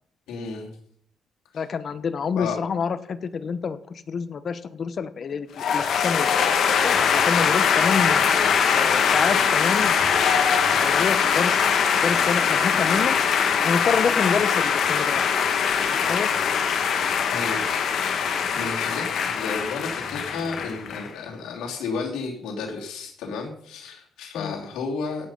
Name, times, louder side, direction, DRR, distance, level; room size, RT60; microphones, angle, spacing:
voice 1, 0.3-0.7 1.5-1.6 2.4-2.6 17.3-17.6 17.9-25.3, left 4 dB, 85° left, -1 dB, 2.8 m, -32 dB
voice 2, 1.5-6.3 6.8-8.2 8.7-11.7 12.0-13.2 13.6-15.3 15.9-16.3 24.4-24.5, left 6 dB, 50° left, 13 dB, 1.1 m, -28 dB
sound 1, 5.6-21.1, left 7 dB, 70° left, 1.9 m, -22 dB
17.0 x 7.4 x 5.6 m, 0.66 s
cardioid pair, 90°, 0 cm